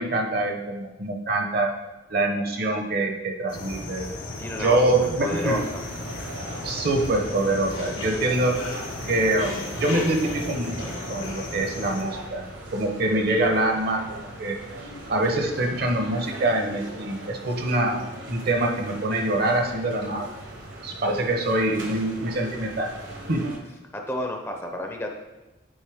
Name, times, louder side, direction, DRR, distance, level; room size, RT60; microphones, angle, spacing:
voice 1, 0.0-1.7 2.1-4.1 4.6-5.6 6.6-8.6 9.1-10.8 11.1-12.4 12.7-14.6 15.1-20.3 20.8-22.9 23.3-23.5, right 2 dB, 50° right, 3 dB, 0.8 m, -25 dB
sound 1, 3.5-12.0, left 2 dB, 90° left, 1.3 m, -35 dB
voice 2, 4.4-5.6 23.9-25.1, left 1 dB, 10° left, 2 dB, 0.6 m, -30 dB
sound 2, 5.2-23.6, right 1 dB, 70° right, 1.2 m, -39 dB
8.9 x 4.1 x 3.5 m, 1.0 s
head